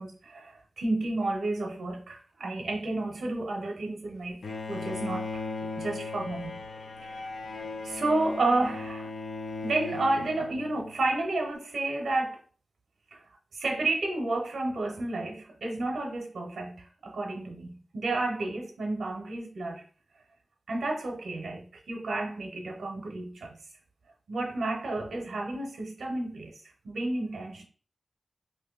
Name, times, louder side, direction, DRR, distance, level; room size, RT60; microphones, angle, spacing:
voice 1, 0.0-4.4 4.7-5.4 5.8-6.6 7.0-7.2 7.8-9.1 9.6-12.4 13.1-13.2 13.5-19.8 20.7-23.5 24.3-26.5 26.8-27.7, right 2 dB, 85° right, 0.6 m, -31 dB
Bowed string instrument, 4.4-11.2, left 3 dB, 75° left, 0.3 m, -37 dB
2.6 x 2.5 x 3.8 m
wide cardioid pair, 115°, 0 cm